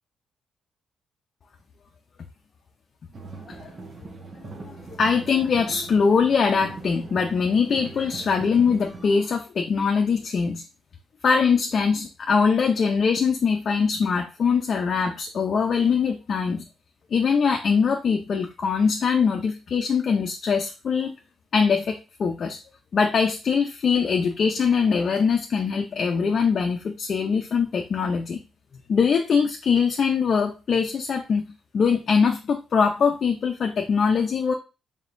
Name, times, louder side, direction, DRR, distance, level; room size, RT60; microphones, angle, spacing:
sound 1, 3.1-9.1, right 3 dB, 45° right, 1.1 m, -41 dB
voice 1, 4.4-10.6 11.2-16.6 17.1-21.1 21.5-21.9 22.2-22.6 22.9-28.4 28.9-34.5, left 5 dB, 55° left, 2 dB, 0.5 m, -22 dB
4.2 x 3.6 x 2.6 m, 0.30 s
supercardioid pair, 60°, 0 cm